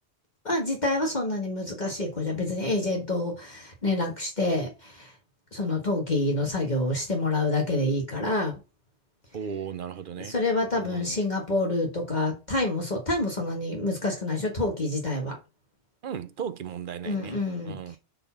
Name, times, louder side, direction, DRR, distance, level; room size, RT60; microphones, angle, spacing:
voice 1, 0.4-5.1 5.5-8.5 10.2-15.4 17.0-18.0, left 2 dB, 40° left, 1.7 m, -27 dB
voice 2, 9.3-10.3 10.8-11.2 16.0-17.3 17.6-18.0, right 8 dB, 55° right, 0.8 m, -36 dB
6.6 x 4.2 x 5.7 m
omnidirectional pair, 1.2 m